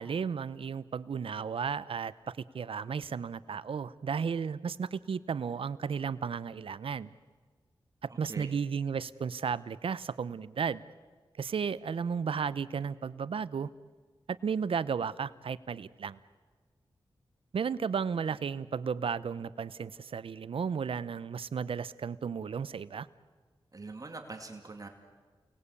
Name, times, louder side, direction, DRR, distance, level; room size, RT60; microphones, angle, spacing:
voice 1, 0.0-7.1 8.0-10.8 11.4-13.7 14.3-16.2 17.5-23.1, right 6 dB, 75° right, 17 dB, 0.8 m, -34 dB
voice 2, 8.1-8.6 23.7-24.9, right 3 dB, 40° right, 4 dB, 2.5 m, -43 dB
29.0 x 20.0 x 8.4 m, 1.5 s
wide cardioid pair, 80°, 9 cm